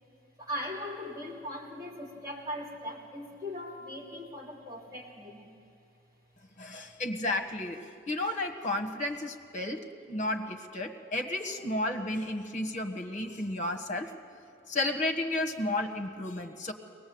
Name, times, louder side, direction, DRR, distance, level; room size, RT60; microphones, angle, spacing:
voice 1, 0.4-5.6, left 1 dB, 20° right, -3 dB, 2.7 m, -39 dB
voice 2, 6.6-14.1 14.7-16.7, left 1 dB, 40° left, 6 dB, 1.4 m, -32 dB
22.5 x 19.5 x 7.9 m, 2.4 s
head